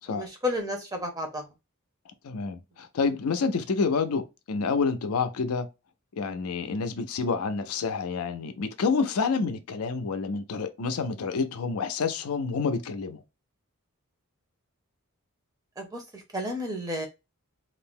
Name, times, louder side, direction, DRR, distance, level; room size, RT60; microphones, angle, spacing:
voice 1, 0.1-1.4 15.8-16.0 16.3-17.1, left 1 dB, 15° right, 0.6 m, -31 dB
voice 2, 2.2-5.7 6.2-13.2, left 4 dB, 85° left, 0.5 m, -28 dB
2.5 x 2.0 x 3.5 m
head